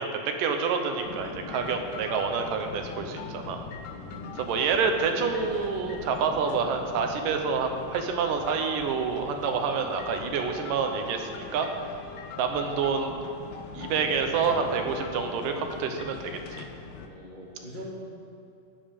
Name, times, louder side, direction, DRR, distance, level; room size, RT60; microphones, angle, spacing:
voice 1, 0.0-3.6 4.4-11.7 12.4-13.1 13.7-16.7, right 5 dB, 75° right, 5 dB, 2.5 m, -28 dB
sound 1, 1.0-17.1, left 6 dB, 75° left, 2.3 m, -41 dB
voice 2, 3.8-4.5 12.0-12.1 17.0-18.0, left 1 dB, 30° left, -5 dB, 0.8 m, -43 dB
12.5 x 9.5 x 5.2 m, 2.8 s
omnidirectional pair, 4.0 m